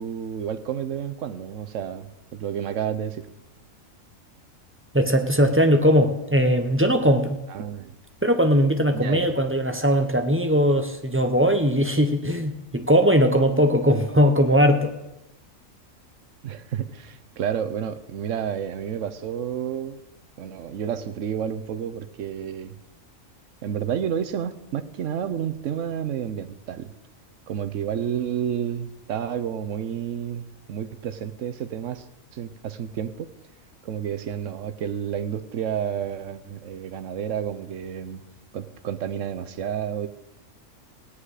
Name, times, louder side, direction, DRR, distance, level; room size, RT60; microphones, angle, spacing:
voice 1, 0.0-3.3 7.5-8.0 8.9-9.4 16.4-20.0 20.4-22.8 23.6-26.9 27.5-32.0 32.3-33.3 33.8-38.2 38.5-40.1, right 8 dB, 70° right, 10 dB, 1.1 m, -30 dB
voice 2, 4.9-7.4 8.2-14.9, equal, 10° right, 5 dB, 0.7 m, -20 dB
16.5 x 9.9 x 4.9 m, 0.94 s
omnidirectional pair, 1.4 m